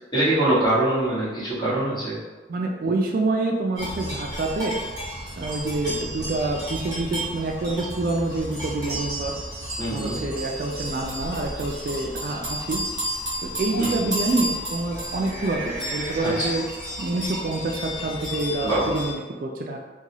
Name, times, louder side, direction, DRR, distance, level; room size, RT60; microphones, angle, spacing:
voice 1, 0.1-2.2 9.8-10.2 13.8-14.0 16.2-16.5 18.6-18.9, right 1 dB, 25° left, -10 dB, 1.4 m, -23 dB
voice 2, 2.5-4.8 5.4-9.3 9.9-12.8 13.4-16.6 17.0-19.8, right 2 dB, 50° right, 1 dB, 0.3 m, -27 dB
sound 1, 3.8-19.1, equal, 20° right, 1.3 m, -32 dB
3.9 x 2.3 x 2.9 m, 1.3 s
head